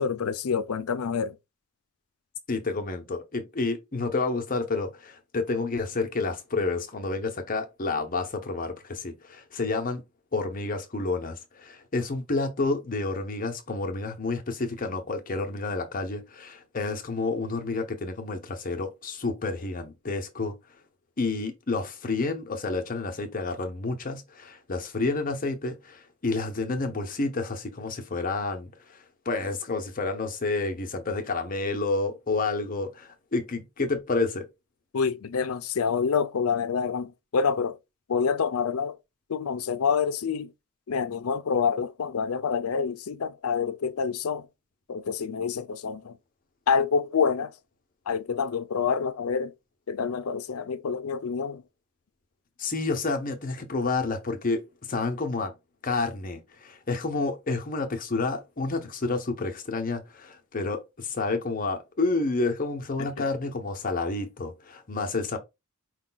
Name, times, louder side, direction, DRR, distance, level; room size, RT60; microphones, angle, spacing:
voice 1, 0.0-1.4 34.9-37.8 38.1-39.0 39.3-40.5 40.9-44.5 44.9-46.2 46.7-47.5 48.1-49.5 49.9-51.6 63.0-63.2, left 6 dB, 75° left, 0.5 m, -27 dB
voice 2, 2.5-10.0 10.3-20.5 21.2-29.0 29.3-34.5 52.6-55.5 55.8-65.4, left 3 dB, 40° left, 0.8 m, -29 dB
4.9 x 2.3 x 3.8 m
head